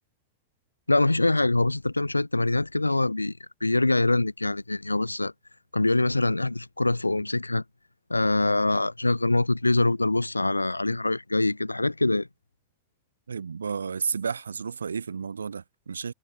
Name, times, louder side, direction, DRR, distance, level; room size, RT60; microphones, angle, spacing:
voice 1, 0.9-5.3 5.7-7.6 8.1-12.3, left 2 dB, 85° left, 1.2 m, -24 dB
voice 2, 13.3-16.1, right 6 dB, 75° right, 1.8 m, -32 dB
figure-of-eight pair, 90°, 0 cm